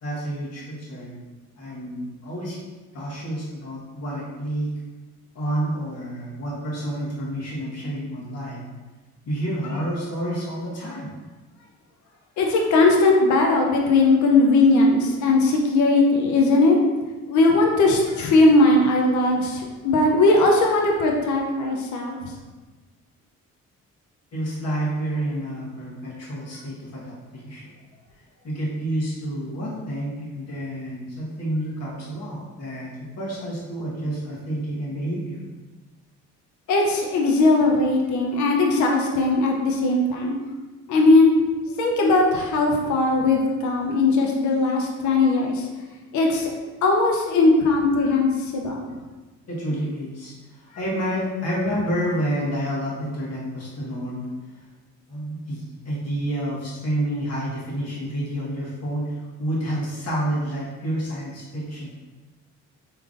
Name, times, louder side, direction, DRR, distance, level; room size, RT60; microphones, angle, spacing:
voice 1, 0.0-1.2 1.6-2.6 2.9-4.7 5.3-8.6 9.3-11.1 24.3-27.7 28.4-32.9 33.2-35.4 49.5-54.3 55.1-61.9, right 1 dB, 55° left, -6 dB, 1.3 m, -29 dB
voice 2, 12.4-16.8 17.3-22.3 36.7-40.4 40.9-41.4 41.7-45.7 46.1-46.5 46.8-48.8, left 2 dB, 75° left, 0 dB, 0.6 m, -19 dB
3.6 x 3.1 x 2.5 m, 1.3 s
cardioid pair, 90°, 30 cm